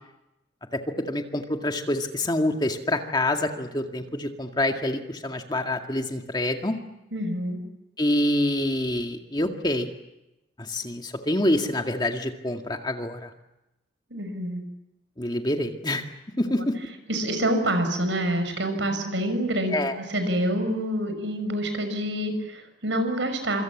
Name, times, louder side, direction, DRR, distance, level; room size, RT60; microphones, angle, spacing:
voice 1, 1.1-6.8 8.0-9.9 10.6-13.3 15.2-16.0 16.4-16.7 19.7-19.9, left 1 dB, 25° left, 4 dB, 2.0 m, -26 dB
voice 2, 7.1-7.6 14.1-14.6 16.5-16.6 17.1-23.6, right 1 dB, 90° right, 8 dB, 6.0 m, -27 dB
26.5 x 25.5 x 7.4 m, 0.93 s
head